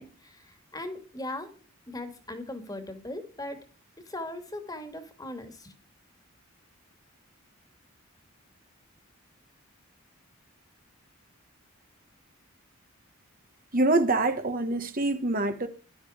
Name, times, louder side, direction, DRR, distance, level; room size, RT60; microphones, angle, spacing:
voice 1, 0.0-1.5 1.9-3.6 4.1-5.7, left 1 dB, 15° left, 2.3 m, -39 dB
voice 2, 13.7-15.7, right 2 dB, 40° right, 1.5 m, -25 dB
13.0 x 12.5 x 5.1 m
head